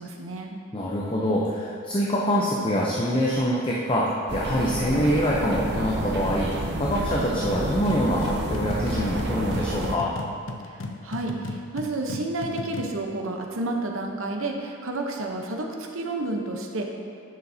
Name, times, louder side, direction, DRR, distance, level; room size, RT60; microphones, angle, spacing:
voice 1, 0.0-0.6 10.7-16.9, right 2 dB, 75° right, 2 dB, 0.9 m, -30 dB
voice 2, 0.7-6.5 6.8-10.1, equal, 25° left, -4 dB, 0.6 m, -25 dB
sound 1, 4.3-10.0, right 2 dB, 50° right, 0.6 m, -30 dB
sound 2, 7.9-13.0, left 2 dB, 65° left, 0.6 m, -36 dB
10.5 x 7.0 x 2.8 m, 2.4 s
head